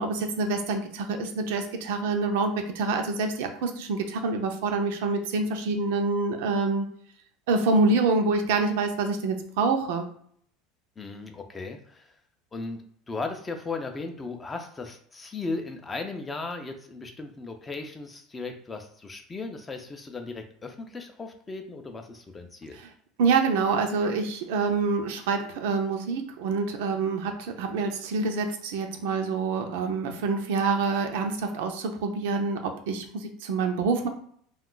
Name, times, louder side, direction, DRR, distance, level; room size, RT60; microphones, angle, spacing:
voice 1, 0.0-6.9 7.5-10.1 22.8-22.9 23.2-34.1, right 4 dB, 80° right, 5 dB, 0.5 m, -26 dB
voice 2, 11.0-12.1 12.5-12.8 13.1-22.8, left 3 dB, 15° left, 5 dB, 0.4 m, -36 dB
2.4 x 2.3 x 3.7 m, 0.63 s
supercardioid pair, 135°, 0 cm